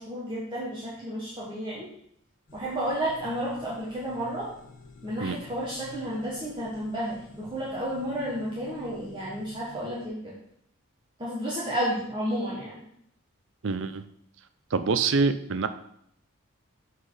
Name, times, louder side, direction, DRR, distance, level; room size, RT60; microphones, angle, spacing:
voice 1, 0.0-1.9 2.5-4.5 5.0-10.3 11.2-12.8, equal, 20° right, -7 dB, 1.4 m, -32 dB
sound 1, 2.5-10.1, left 3 dB, 40° left, 1.1 m, -50 dB
voice 2, 13.6-14.0 14.7-15.7, right 4 dB, 60° right, 11 dB, 0.5 m, -25 dB
7.3 x 4.2 x 4.8 m, 0.72 s
head